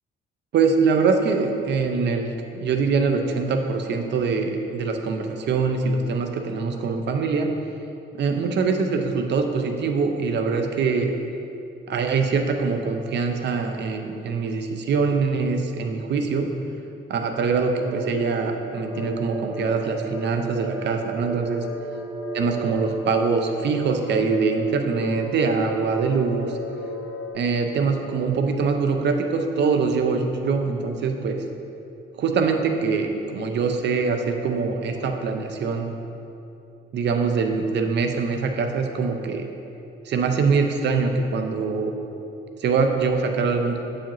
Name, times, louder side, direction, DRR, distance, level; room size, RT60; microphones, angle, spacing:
voice 1, 0.5-7.5 8.1-11.1 11.9-16.5 17.1-21.6 22.4-26.6 27.3-31.4 32.2-36.0 36.9-39.5 40.0-41.9 42.6-43.8, right 4 dB, 60° right, 5 dB, 0.6 m, -23 dB
sound 1, 17.7-27.3, right 1 dB, 90° left, 1.4 m, -34 dB
8.3 x 4.9 x 3.0 m, 2.7 s
cardioid pair, 90°, 20 cm